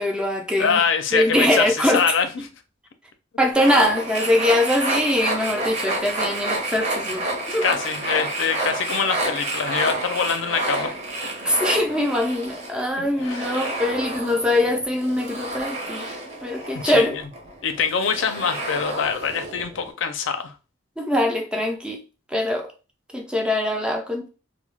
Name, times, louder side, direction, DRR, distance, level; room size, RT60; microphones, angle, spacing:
voice 1, 0.0-0.8 1.1-2.0 3.4-7.6 11.4-16.1 16.4-17.2 21.0-22.0 22.3-22.7 23.1-24.3, left 1 dB, 5° right, 0.4 m, -22 dB
voice 2, 0.6-2.5 7.6-10.9 13.0-13.4 16.7-17.2 17.6-20.5, left 6 dB, 70° left, 0.4 m, -24 dB
sound 1, 3.5-19.9, right 1 dB, 35° right, 0.7 m, -29 dB
2.3 x 2.1 x 3.2 m
head